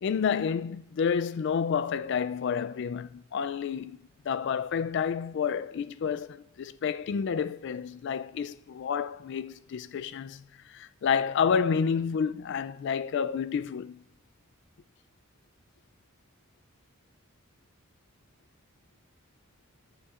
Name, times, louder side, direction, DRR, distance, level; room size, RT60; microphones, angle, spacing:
voice 1, 0.0-4.0 4.3-10.4 10.7-14.0, left 6 dB, 55° left, 0.3 m, -29 dB
21.5 x 8.3 x 2.5 m
head